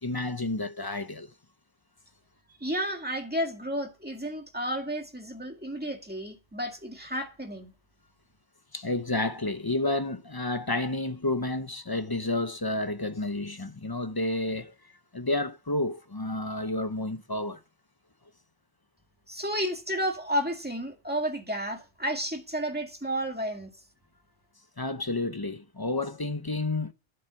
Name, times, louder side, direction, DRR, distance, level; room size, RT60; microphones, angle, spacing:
voice 1, 0.0-1.3 8.7-14.7 15.1-17.6 24.8-26.9, left 2 dB, 25° left, 0.7 m, -30 dB
voice 2, 2.6-7.7 19.3-23.7, equal, 10° right, 2.1 m, -32 dB
11.5 x 10.0 x 5.9 m
omnidirectional pair, 1.1 m